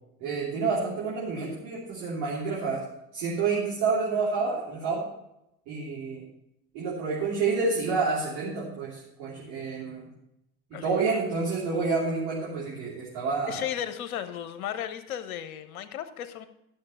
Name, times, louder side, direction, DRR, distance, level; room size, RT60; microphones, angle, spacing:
voice 1, 0.2-2.8 3.1-5.1 5.7-6.2 6.7-10.0 10.7-13.6, right 4 dB, 60° right, -6 dB, 3.3 m, -29 dB
voice 2, 13.5-16.5, left 10 dB, 75° left, 10 dB, 1.0 m, -35 dB
12.0 x 7.1 x 5.6 m, 0.83 s
figure-of-eight pair, 65°, 43 cm